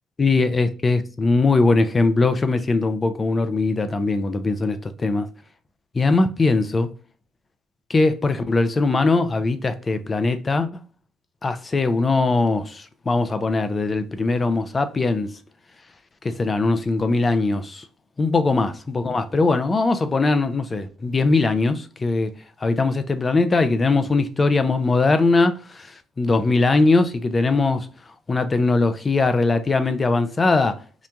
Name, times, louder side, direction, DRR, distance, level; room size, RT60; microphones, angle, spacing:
voice 1, 0.2-5.3 5.9-6.9 7.9-10.8 11.4-15.3 16.2-17.9 18.2-22.3 22.6-27.9 28.3-30.8, left 3 dB, 30° left, 0.4 m, -20 dB
2.9 x 2.1 x 2.4 m
hypercardioid pair, 55°, 0 cm